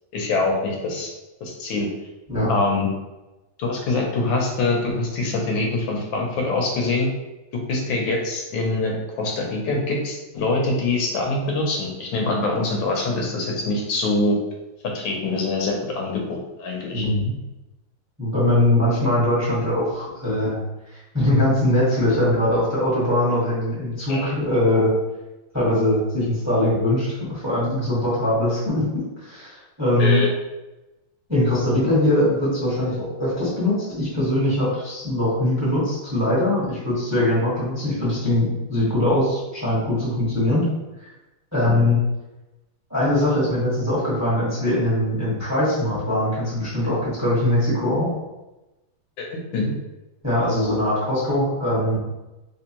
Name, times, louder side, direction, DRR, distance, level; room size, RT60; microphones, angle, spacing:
voice 1, 0.1-1.1 1.4-1.9 2.5-2.9 3.6-7.1 7.7-14.4 14.9-17.1 24.1-24.3 30.0-30.3 49.2-49.7, left 2 dB, 80° left, 0 dB, 1.5 m, -24 dB
voice 2, 16.9-17.3 18.2-20.6 20.9-24.9 25.5-28.9 29.2-30.2 31.3-40.7 41.0-41.1 41.5-42.0 42.9-48.1 50.2-52.0, left 1 dB, 10° right, -8 dB, 1.1 m, -21 dB
3.4 x 3.2 x 2.9 m, 1.0 s
omnidirectional pair, 2.1 m